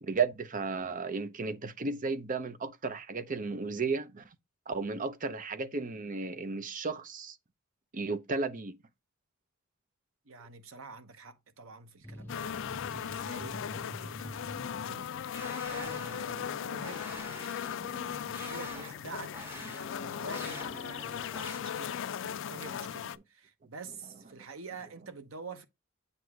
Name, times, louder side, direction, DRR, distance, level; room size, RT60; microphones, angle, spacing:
voice 1, 0.0-4.3 4.7-7.4 7.9-8.8 15.8-15.9 17.8-18.5 20.1-20.2 24.3-24.4, right 4 dB, 40° right, 0.6 m, -34 dB
voice 2, 10.2-17.3 18.0-22.0 22.4-25.7, right 4 dB, 85° right, 1.0 m, -48 dB
sound 1, 12.0-15.2 15.5-18.6 19.4-21.4, left 1 dB, 10° left, 0.5 m, -49 dB
sound 2, 12.3-23.2, left 8 dB, 65° left, 0.4 m, -38 dB
sound 3, 15.3-16.4 16.8-17.8 18.3-19.0 19.3-19.8 20.3-20.7 21.3-21.6, left 1 dB, 10° right, 1.7 m, -45 dB
7.8 x 2.7 x 4.7 m
head